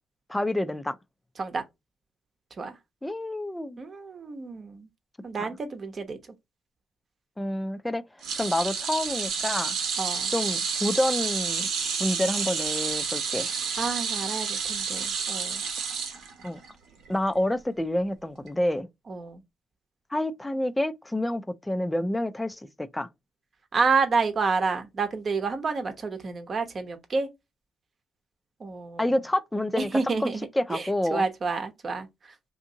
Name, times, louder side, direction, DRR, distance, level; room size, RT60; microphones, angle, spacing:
voice 1, 0.3-1.0 3.0-3.8 5.4-5.5 7.4-8.0 8.4-9.8 10.3-11.7 12.0-13.5 16.4-16.6 17.1-18.9 20.1-23.1 29.0-29.9 30.2-31.3, left 1 dB, 10° left, 0.4 m, -28 dB
voice 2, 3.8-4.9 5.2-6.2 10.0-10.3 13.8-15.6 19.1-19.4 23.7-27.3 28.6-29.1 29.8-32.3, right 4 dB, 40° right, 0.8 m, -29 dB
sound 1, 8.2-16.7 17.0-17.3 18.5-18.6, right 6 dB, 80° right, 0.9 m, -30 dB
2.7 x 2.5 x 3.8 m
cardioid pair, 90°, 0 cm